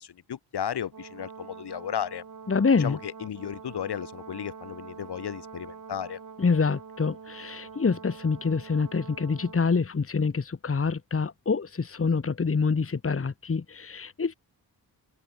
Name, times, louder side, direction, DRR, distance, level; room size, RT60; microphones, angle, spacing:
voice 1, 0.0-2.2 2.8-6.2, left 9 dB, 85° left, 5.4 m, -34 dB
Brass instrument, 0.9-9.9, right 6 dB, 55° right, 2.5 m, -45 dB
voice 2, 2.5-3.0 6.4-14.3, left 5 dB, 35° left, 1.8 m, -26 dB
open air
cardioid pair, 70°, 39 cm